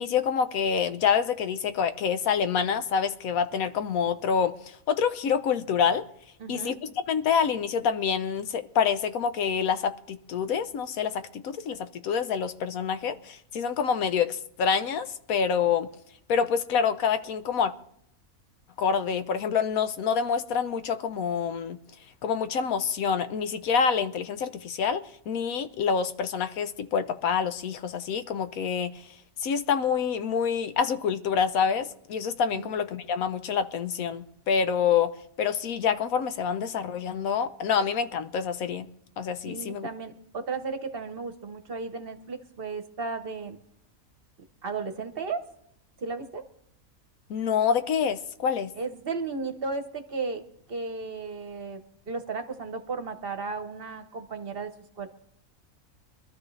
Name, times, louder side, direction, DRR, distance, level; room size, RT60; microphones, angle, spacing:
voice 1, 0.0-6.0 6.5-15.9 16.3-17.7 18.8-21.8 22.2-29.0 29.4-35.1 35.4-38.9 39.2-39.9 47.3-48.7, left 7 dB, 85° left, 1.2 m, -27 dB
voice 2, 6.4-6.8 32.5-32.7 39.4-43.6 44.6-45.5 46.0-46.5 48.8-50.4 50.7-54.7 55.0-55.1, right 4 dB, 45° right, 1.1 m, -34 dB
24.0 x 12.5 x 3.2 m
omnidirectional pair, 1.4 m